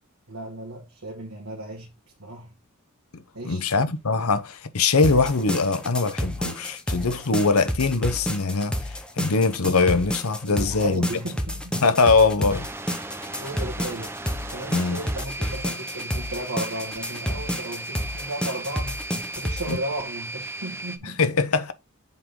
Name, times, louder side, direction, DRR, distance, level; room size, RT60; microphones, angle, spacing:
voice 1, 0.3-1.9 2.2-2.5 3.3-3.6 10.5-11.7 13.4-14.2 14.5-21.3, right 1 dB, 70° right, 1.8 m, -35 dB
voice 2, 3.1-11.1 11.7-12.7 14.7-15.0 19.7-19.8 21.0-21.7, left 4 dB, 75° left, 0.9 m, -22 dB
sound 1, 3.8-13.6, left 2 dB, 25° left, 1.8 m, -52 dB
sound 2, 5.0-19.7, equal, 5° left, 1.0 m, -30 dB
sound 3, 12.5-21.0, right 2 dB, 10° right, 0.7 m, -36 dB
7.4 x 3.9 x 3.7 m
head